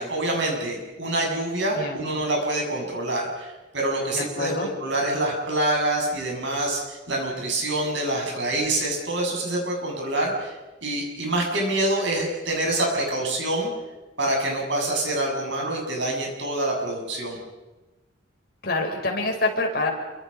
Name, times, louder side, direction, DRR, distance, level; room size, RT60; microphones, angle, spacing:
voice 1, 0.0-10.5 10.8-13.7 14.2-17.4, right 1 dB, 65° right, 0 dB, 7.6 m, -26 dB
voice 2, 1.7-2.1 4.1-4.7 18.6-19.9, left 2 dB, 50° left, 1 dB, 5.4 m, -26 dB
28.5 x 25.0 x 5.6 m, 1.1 s
head